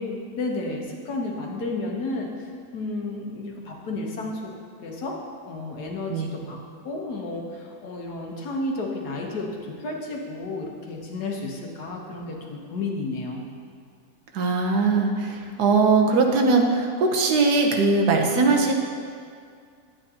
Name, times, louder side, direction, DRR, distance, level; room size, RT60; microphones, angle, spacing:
voice 1, 0.0-2.3 2.7-4.5 4.8-5.2 5.5-6.6 6.8-13.4, left 2 dB, 85° left, 0 dB, 1.7 m, -32 dB
voice 2, 14.3-18.7, right 3 dB, 85° right, 2 dB, 1.5 m, -20 dB
10.5 x 8.6 x 2.9 m, 2.2 s
omnidirectional pair, 1.7 m